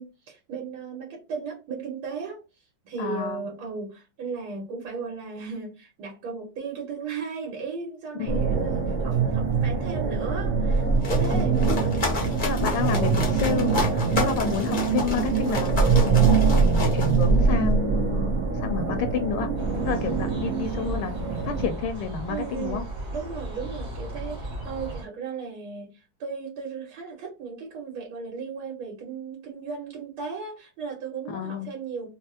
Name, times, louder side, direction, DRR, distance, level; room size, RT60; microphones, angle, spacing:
voice 1, 0.0-11.6 14.1-14.5 22.3-32.1, right 5 dB, 85° right, -2 dB, 1.9 m, -36 dB
voice 2, 3.0-3.5 8.2-8.4 11.3-11.5 12.4-13.8 14.2-19.5 19.8-22.8 31.3-31.7, left 7 dB, 80° left, 7 dB, 1.4 m, -30 dB
sound 1, 8.3-21.7, right 5 dB, 65° right, 0.4 m, -24 dB
sound 2, 10.7-17.7, left 2 dB, 60° left, 0.5 m, -30 dB
sound 3, 19.6-25.0, right 1 dB, 30° right, 0.9 m, -36 dB
4.2 x 2.0 x 2.7 m, 0.28 s
omnidirectional pair, 2.3 m